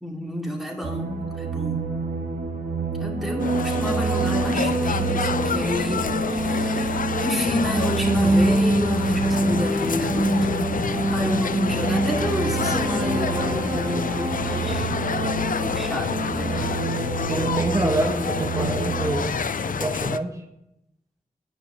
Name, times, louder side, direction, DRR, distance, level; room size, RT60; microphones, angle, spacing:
voice 1, 0.0-1.9 3.0-14.9 15.5-16.7 17.7-18.0, equal, ahead, -1 dB, 2.4 m, -29 dB
sound 1, 0.8-19.1, right 2 dB, 65° right, 1.7 m, -26 dB
sound 2, 3.4-20.2, left 6 dB, 70° left, 0.4 m, -28 dB
voice 2, 17.3-19.3 19.6-20.4, right 1 dB, 20° right, 1 dB, 1.0 m, -26 dB
10.5 x 5.0 x 7.1 m, 0.85 s
wide cardioid pair, 75°, 15 cm